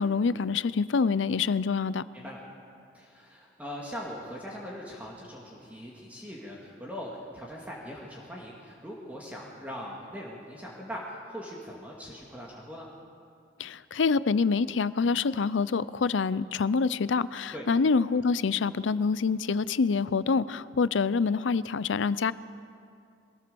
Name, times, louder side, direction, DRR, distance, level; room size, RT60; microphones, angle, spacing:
voice 1, 0.0-2.0 13.6-22.3, left 5 dB, 80° left, 17 dB, 0.5 m, -26 dB
voice 2, 2.9-12.9 17.5-17.6, equal, 10° right, -4 dB, 2.2 m, -41 dB
22.5 x 18.5 x 7.0 m, 2.5 s
head